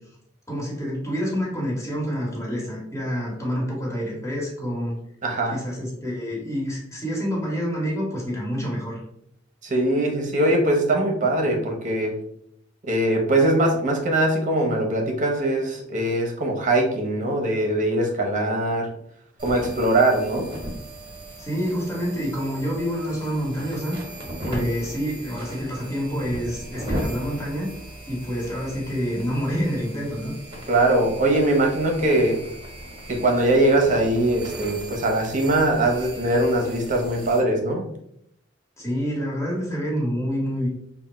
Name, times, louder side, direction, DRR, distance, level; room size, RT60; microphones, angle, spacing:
voice 1, 0.5-5.0 5.5-9.0 21.4-24.0 24.4-27.7 28.1-30.3 38.8-40.7, equal, 15° left, -5 dB, 1.4 m, -27 dB
voice 2, 5.2-5.6 9.6-12.1 12.8-18.9 19.4-20.5 24.4-24.7 30.7-32.4 33.1-37.8, right 1 dB, 40° right, 2 dB, 0.8 m, -21 dB
sound 1, 19.4-37.4, right 1 dB, 25° right, 1.2 m, -37 dB
3.4 x 2.2 x 4.3 m, 0.75 s
head